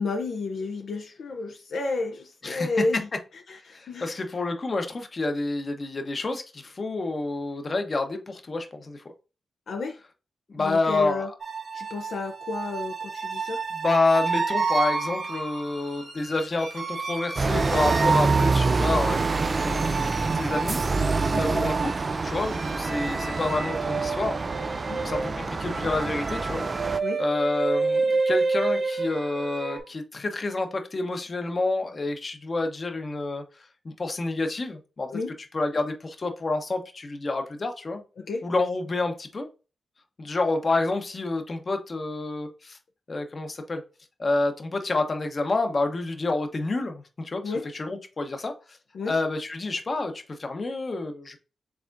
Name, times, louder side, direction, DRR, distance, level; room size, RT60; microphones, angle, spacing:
voice 1, 0.0-3.1 3.3-4.3 9.7-10.0 10.6-11.3 11.7-13.6 21.3-21.7 24.9-25.0 27.0-27.2 35.1-35.3 38.2-38.4 47.4-47.7 48.9-49.1, left 3 dB, 75° left, 0.5 m, -31 dB
voice 2, 3.7-9.0 10.5-11.3 13.7-20.8 21.4-21.9 22.2-24.4 25.0-26.7 27.2-33.4 33.8-35.1 35.5-38.0 38.4-39.5 40.2-42.8 43.1-43.8 44.2-48.5 49.1-51.4, left 2 dB, 45° left, 0.9 m, -28 dB
sound 1, 11.4-29.8, right 4 dB, 65° right, 1.8 m, -30 dB
sound 2, 17.4-27.0, right 3 dB, 45° right, 0.3 m, -26 dB
4.8 x 3.6 x 2.5 m
cardioid pair, 55°, 0 cm